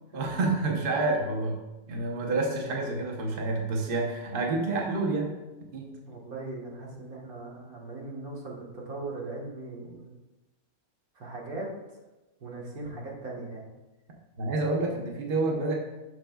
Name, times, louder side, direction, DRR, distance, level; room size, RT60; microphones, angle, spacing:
voice 1, 0.1-1.6 1.9-5.3 5.7-5.9 12.8-13.0 14.4-15.7, right 3 dB, 40° right, 0 dB, 1.0 m, -28 dB
voice 2, 6.1-10.2 11.2-11.7 12.4-13.7, right 2 dB, 75° right, -2 dB, 1.9 m, -39 dB
9.5 x 6.5 x 2.3 m, 1.1 s
omnidirectional pair, 1.6 m